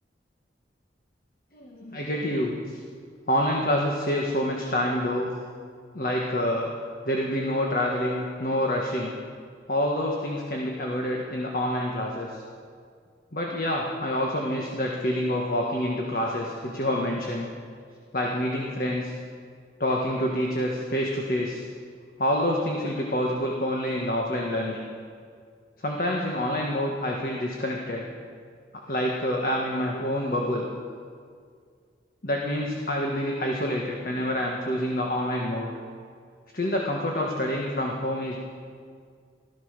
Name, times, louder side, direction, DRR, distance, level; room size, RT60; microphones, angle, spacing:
voice 1, 1.5-2.8 3.3-5.3 5.9-6.7 7.0-9.2 9.7-12.4 13.3-17.5 18.1-19.1 19.8-21.6 22.2-24.8 25.8-28.1 28.9-30.7 32.2-35.7 36.5-38.4, left 1 dB, 50° left, -1 dB, 1.5 m, -27 dB
16.0 x 13.5 x 6.7 m, 2.1 s
head